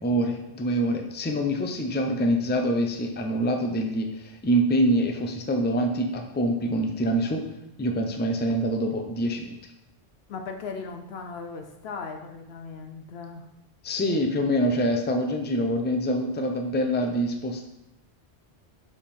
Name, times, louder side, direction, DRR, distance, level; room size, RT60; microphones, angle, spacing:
voice 1, 0.0-7.4 7.8-9.6 13.8-17.7, equal, 15° left, 3 dB, 0.4 m, -25 dB
voice 2, 10.3-13.5, left 4 dB, 70° left, 5 dB, 0.8 m, -37 dB
7.0 x 3.6 x 4.3 m, 0.87 s
omnidirectional pair, 1.1 m